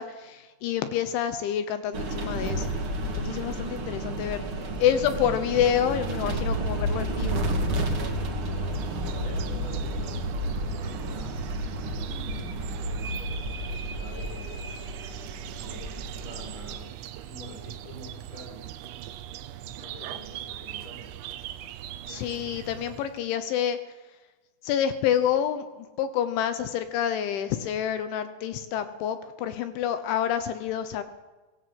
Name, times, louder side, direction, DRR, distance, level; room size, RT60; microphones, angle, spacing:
voice 1, 0.0-2.7 3.0-4.4 4.8-7.5 22.1-23.8 24.6-31.0, left 9 dB, 75° left, 10 dB, 3.2 m, -28 dB
sound 1, 1.9-16.8, right 1 dB, 45° right, 1.7 m, -31 dB
sound 2, 8.4-23.2, right 12 dB, 75° right, 3.1 m, -41 dB
voice 2, 9.0-18.6 19.6-21.1, left 1 dB, 40° left, 2 dB, 7.6 m, -47 dB
23.0 x 19.0 x 7.7 m, 1.2 s
omnidirectional pair, 6.0 m